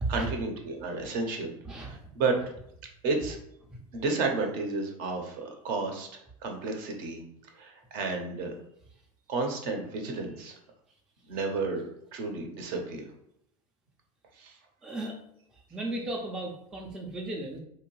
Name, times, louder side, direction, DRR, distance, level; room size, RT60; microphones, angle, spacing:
voice 1, 0.1-1.5 1.8-2.3 3.0-3.4 3.9-6.1 6.4-7.2 7.6-8.5 9.3-10.5 11.3-11.8 12.1-13.0 14.4-14.5, right 3 dB, 50° right, 3 dB, 0.7 m, -31 dB
voice 2, 1.6-2.0 14.8-15.1 15.7-17.6, right 2 dB, 5° right, 0 dB, 0.3 m, -34 dB
2.7 x 2.1 x 3.0 m, 0.74 s
hypercardioid pair, 105°, 19 cm